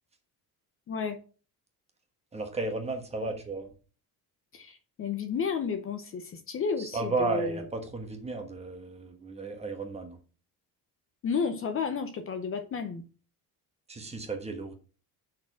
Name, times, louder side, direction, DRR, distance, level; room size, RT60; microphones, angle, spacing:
voice 1, 0.9-1.2 3.2-3.3 4.5-7.6 11.2-13.1, left 5 dB, 35° left, 8 dB, 0.7 m, -32 dB
voice 2, 2.3-3.7 6.8-10.2 13.9-14.7, right 3 dB, 15° right, 4 dB, 1.3 m, -33 dB
6.1 x 4.7 x 6.0 m, 0.36 s
cardioid pair, 170°, 37 cm